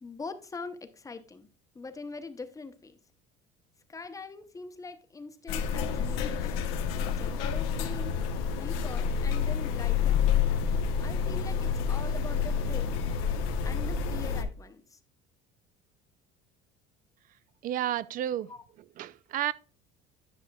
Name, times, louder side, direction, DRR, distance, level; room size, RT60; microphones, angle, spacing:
voice 1, 0.0-1.5 1.7-3.0 3.9-6.5 6.9-8.2 8.6-10.3 11.0-13.0 13.6-15.0 18.5-18.6, left 4 dB, 15° left, 0.7 m, -43 dB
sound 1, 5.5-14.4, left 6 dB, 90° left, 0.9 m, -29 dB
voice 2, 17.6-18.5 19.0-19.5, right 12 dB, 45° right, 0.4 m, -31 dB
10.5 x 6.3 x 2.3 m
cardioid pair, 115°, 19 cm